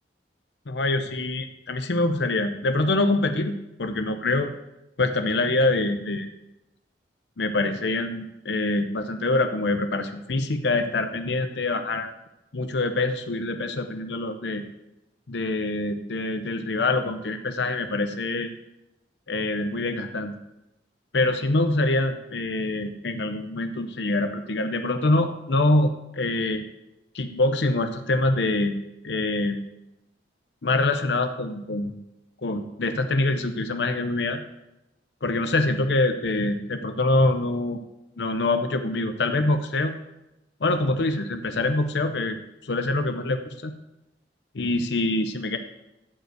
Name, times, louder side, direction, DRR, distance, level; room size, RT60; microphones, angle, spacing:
voice 1, 0.7-4.5 5.0-6.3 7.4-12.1 12.5-14.6 15.3-18.5 19.3-20.4 21.1-26.6 27.1-28.8 29.0-29.7 30.6-32.0 32.4-34.4 35.2-37.8 38.2-39.9 40.6-42.4 42.6-43.7 44.5-45.6, left 2 dB, 75° left, 7 dB, 0.7 m, -25 dB
12.5 x 5.3 x 8.0 m, 0.94 s
head